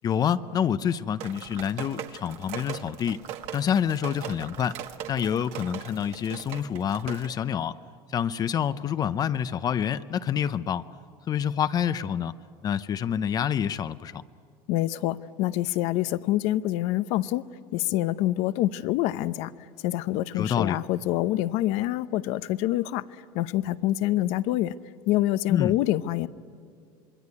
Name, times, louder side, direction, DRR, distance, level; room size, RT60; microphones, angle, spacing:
voice 1, 0.0-3.2 3.5-4.8 5.1-7.8 8.1-10.8 11.3-12.3 12.6-14.2 20.3-20.8 25.5-25.7, left 8 dB, 35° left, 13 dB, 0.6 m, -27 dB
sound 1, 1.2-7.3, right 10 dB, 65° right, 1.8 m, -39 dB
voice 2, 14.7-17.4 17.7-19.5 19.8-23.0 23.3-24.7 25.1-26.3, left 15 dB, 65° left, 15 dB, 0.8 m, -26 dB
26.5 x 21.5 x 9.6 m, 2.3 s
supercardioid pair, 130°, 12 cm